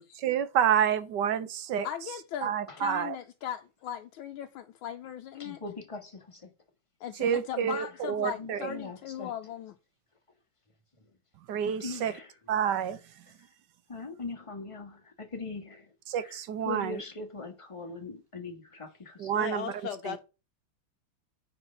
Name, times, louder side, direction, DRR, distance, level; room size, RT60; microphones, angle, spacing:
voice 1, 0.2-1.9 2.4-3.2 7.2-8.8 11.5-12.1 12.5-13.0 16.1-17.0 19.2-19.7 20.0-20.2, right 9 dB, 65° right, 1.3 m, -28 dB
voice 2, 1.8-5.6 7.0-9.7, left 10 dB, 80° left, 1.5 m, -38 dB
voice 3, 5.4-6.5 8.2-9.3 11.5-12.3 13.3-13.4 13.9-19.4, left 3 dB, 20° left, 1.2 m, -41 dB
voice 4, 19.3-20.2, left 8 dB, 60° left, 1.4 m, -36 dB
9.1 x 4.5 x 5.6 m
omnidirectional pair, 2.3 m